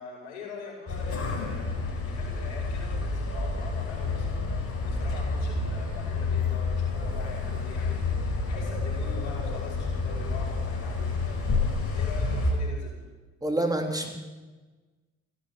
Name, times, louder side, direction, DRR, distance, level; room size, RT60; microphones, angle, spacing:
voice 1, 0.0-13.0, left 4 dB, 85° left, 0 dB, 5.0 m, -44 dB
sound 1, 0.9-12.5, left 3 dB, 40° left, 4.5 m, -29 dB
voice 2, 13.4-14.1, right 1 dB, 10° right, 3 dB, 3.2 m, -27 dB
15.5 x 10.5 x 8.6 m, 1.3 s
hypercardioid pair, 65°, 34 cm